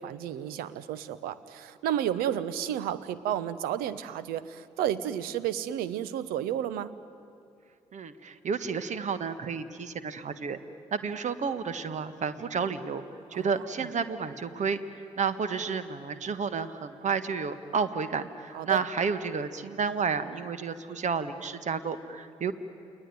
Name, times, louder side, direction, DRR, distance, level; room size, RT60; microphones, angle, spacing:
voice 1, 0.0-6.9 13.3-13.5 18.5-18.8, right 10 dB, 70° right, 17 dB, 1.0 m, -32 dB
voice 2, 7.9-10.6 10.9-13.0 13.3-14.8 15.2-22.5, right 5 dB, 50° right, 12 dB, 1.6 m, -31 dB
30.0 x 20.5 x 9.5 m, 2.5 s
figure-of-eight pair, 40°, 16 cm